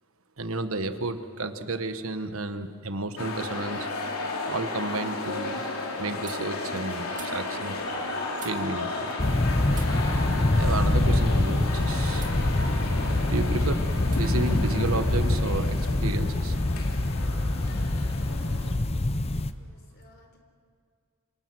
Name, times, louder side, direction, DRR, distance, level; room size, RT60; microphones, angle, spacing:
voice 1, 0.4-3.9 4.5-5.6 6.0-7.8 8.4-9.1 10.1-12.3 13.2-13.8 14.1-16.6, right 2 dB, 75° right, 9 dB, 1.3 m, -32 dB
sound 1, 3.2-18.7, left 2 dB, 80° left, 3.4 m, -33 dB
sound 2, 6.2-9.4 9.7-11.7 12.1-12.4 12.8-13.5 14.0-14.2 14.5-15.6, right 8 dB, 35° right, 2.8 m, -51 dB
sound 3, 9.2-19.5, left 2 dB, 30° left, 0.7 m, -25 dB
voice 2, 19.5-20.4, left 2 dB, 50° left, 4 dB, 4.0 m, -59 dB
26.5 x 26.5 x 6.2 m, 2.1 s
head